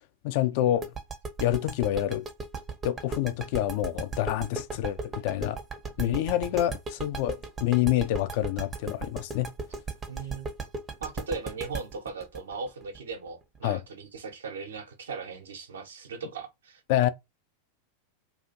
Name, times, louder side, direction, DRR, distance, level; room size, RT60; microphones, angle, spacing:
voice 1, 0.2-0.9 1.4-2.2 2.8-5.6 6.0-9.5 13.6-13.8 16.9-17.1, left 13 dB, 50° left, 0.3 m, -27 dB
sound 1, 0.8-13.6, right 4 dB, 20° right, 0.6 m, -36 dB
voice 2, 6.0-6.6 10.1-10.5 11.0-16.8, right 4 dB, 65° right, 0.7 m, -38 dB
2.4 x 2.4 x 2.7 m
figure-of-eight pair, 90°, 0 cm